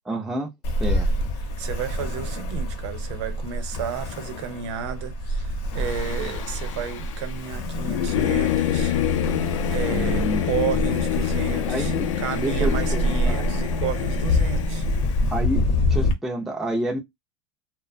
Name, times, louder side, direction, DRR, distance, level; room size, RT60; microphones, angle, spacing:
voice 1, 0.1-0.5 0.8-1.1 9.9-10.6 11.7-12.1 12.3-13.4 15.3-15.6 15.9-17.0, right 1 dB, ahead, 0.3 m, -28 dB
Ocean, 0.6-16.1, left 1 dB, 40° left, 0.7 m, -27 dB
voice 2, 1.6-8.9 9.7-11.9 12.2-14.9, right 9 dB, 70° right, 0.7 m, -32 dB
Singing / Musical instrument, 5.8-15.3, left 10 dB, 85° left, 0.5 m, -27 dB
2.4 x 2.1 x 2.4 m
supercardioid pair, 160°, 16 cm